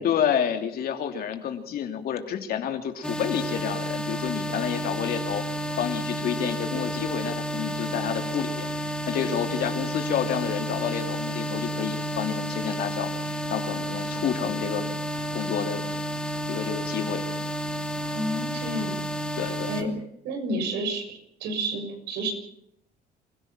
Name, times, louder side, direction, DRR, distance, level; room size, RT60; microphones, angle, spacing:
voice 1, 0.0-15.0 15.3-15.8 16.5-17.3 19.3-19.9, left 8 dB, 65° left, 5 dB, 3.1 m, -29 dB
sound 1, 3.0-19.8, equal, 5° left, 2.6 m, -31 dB
voice 2, 18.1-19.0 19.7-19.9 20.2-22.3, right 1 dB, 80° right, 5 dB, 6.6 m, -30 dB
28.5 x 16.5 x 5.9 m, 0.71 s
cardioid pair, 110°, 17 cm